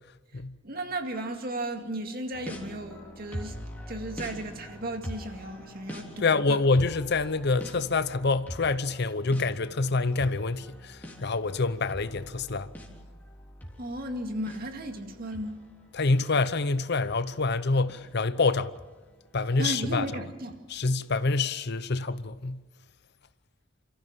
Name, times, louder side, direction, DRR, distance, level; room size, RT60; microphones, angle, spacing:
voice 1, 0.6-3.6 3.9-6.6 13.8-15.6 19.6-20.6, right 1 dB, 50° right, 2.2 m, -35 dB
sound 1, 2.3-19.3 19.6-19.7 20.5-20.6 21.3-21.4, equal, 10° left, 3.6 m, -44 dB
voice 2, 6.2-12.7 15.9-18.7 19.3-20.1 20.7-22.6, left 3 dB, 60° left, 0.8 m, -26 dB
29.0 x 14.5 x 7.4 m
head